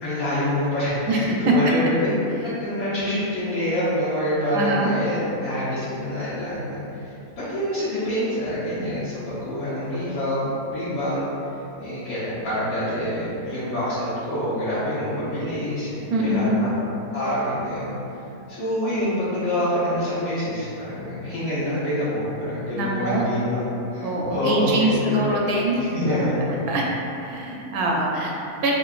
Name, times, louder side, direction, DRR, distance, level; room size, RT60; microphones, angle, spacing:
voice 1, 0.0-2.1 2.6-11.2 11.8-16.7 17.1-17.9 18.5-23.6 23.9-25.4 25.9-26.6, left 1 dB, 70° left, -12 dB, 1.4 m, -26 dB
voice 2, 4.5-4.9 16.1-16.6 22.7-23.3 24.0-25.8 26.7-26.8 27.2-28.7, right 1 dB, 85° right, -2 dB, 1.1 m, -24 dB
3.9 x 3.5 x 2.4 m, 2.8 s
omnidirectional pair, 1.5 m